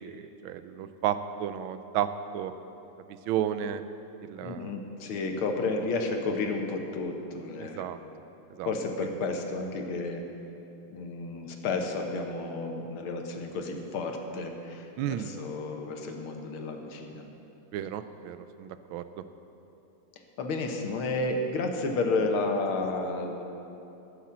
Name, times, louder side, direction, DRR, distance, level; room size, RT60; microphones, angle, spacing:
voice 1, 0.0-2.5 3.1-3.8 4.2-4.7 7.6-8.0 8.5-8.7 9.0-9.2 15.0-15.3 17.7-19.2, right 10 dB, 75° right, 11 dB, 1.3 m, -33 dB
voice 2, 4.4-7.9 8.6-10.2 10.9-17.2 20.4-23.5, left 3 dB, 70° left, 3 dB, 1.9 m, -31 dB
13.5 x 7.2 x 7.4 m, 2.9 s
omnidirectional pair, 2.4 m